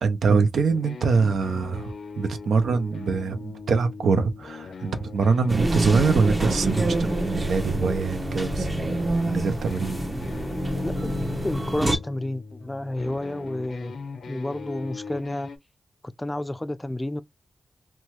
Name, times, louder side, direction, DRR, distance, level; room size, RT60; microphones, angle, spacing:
voice 1, 0.0-8.7 9.2-10.0, right 5 dB, 90° right, 0.4 m, -24 dB
sound 1, 0.7-15.6, left 4 dB, 85° left, 0.4 m, -39 dB
sound 2, 5.5-12.0, right 1 dB, 35° right, 0.9 m, -27 dB
voice 2, 11.4-13.9 14.3-15.5 16.0-17.2, left 1 dB, 20° left, 0.3 m, -30 dB
2.8 x 2.2 x 2.9 m
cardioid pair, 45°, 0 cm